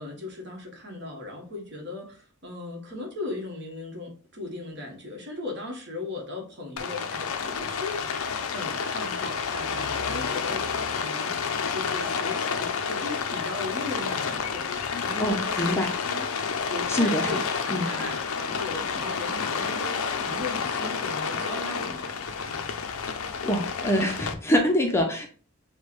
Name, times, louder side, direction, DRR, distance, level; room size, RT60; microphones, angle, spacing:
voice 1, 0.0-16.3 16.7-22.6 23.0-23.2, left 2 dB, 50° right, 1 dB, 1.3 m, -38 dB
Rain, 6.8-24.3, left 6 dB, 65° left, 0.5 m, -30 dB
voice 2, 15.2-15.9 16.9-17.4 17.7-17.9 23.4-25.3, equal, 10° left, 2 dB, 0.5 m, -25 dB
6.3 x 2.2 x 3.1 m, 0.39 s
head